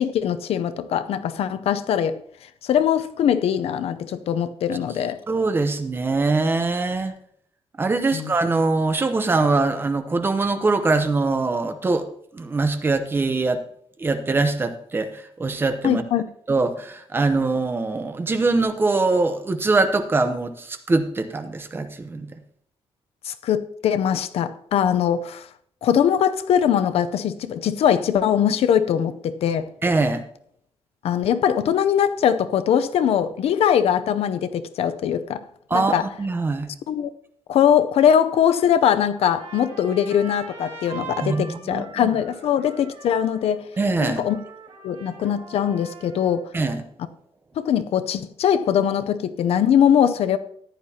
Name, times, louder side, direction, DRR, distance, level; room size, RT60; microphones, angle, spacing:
voice 1, 0.0-2.2 2.6-5.2 8.1-8.3 15.8-16.2 23.2-25.5 25.8-29.7 31.0-35.4 35.7-36.0 36.9-37.1 37.5-43.7 44.0-44.4 44.8-46.4 47.6-50.4, left 9 dB, 75° left, 0.6 m, -21 dB
voice 2, 5.3-7.2 7.8-12.1 12.3-13.6 14.0-16.0 16.5-22.3 29.8-30.2 35.7-36.7 41.2-42.1 43.8-44.2 46.5-46.8, right 3 dB, 20° right, 0.8 m, -23 dB
Trumpet, 39.1-46.4, right 5 dB, 85° right, 2.1 m, -42 dB
14.5 x 10.5 x 2.8 m
wide cardioid pair, 170°, 10 cm